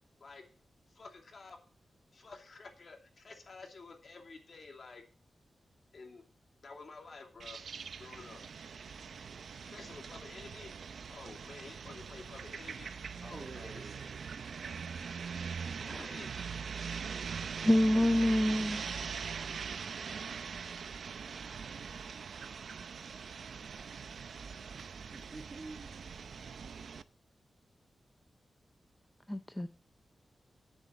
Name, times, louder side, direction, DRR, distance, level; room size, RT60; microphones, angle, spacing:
voice 1, 0.9-1.6 2.1-5.0 5.9-6.2 6.6-7.6 8.0-8.4 9.7-10.7 11.1-12.9 13.2-13.9 16.0-16.4, left 3 dB, 60° left, 2.5 m, -50 dB
sound 1, 7.4-27.0, right 6 dB, 80° right, 0.6 m, -42 dB
voice 2, 8.9-9.4 13.2-15.1 24.7-26.9, right 3 dB, 45° right, 1.3 m, -51 dB
voice 3, 17.6-18.8 29.3-29.7, left 1 dB, 10° left, 0.5 m, -27 dB
9.9 x 7.2 x 6.8 m
wide cardioid pair, 90°, 0 cm